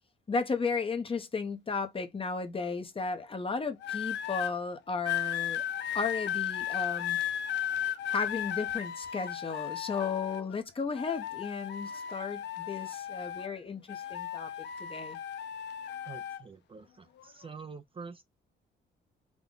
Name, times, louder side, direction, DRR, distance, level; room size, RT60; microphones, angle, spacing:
voice 1, 0.3-5.6 5.9-7.2 8.1-14.5 14.8-15.2, left 4 dB, 25° left, 0.8 m, -34 dB
sound 1, 3.8-4.5 5.1-10.6 11.0-13.6 13.9-16.4 17.2-17.5, left 10 dB, 65° left, 0.6 m, -35 dB
voice 2, 16.0-18.2, right 5 dB, 25° right, 0.4 m, -46 dB
3.7 x 2.2 x 3.8 m
cardioid pair, 90°, 20 cm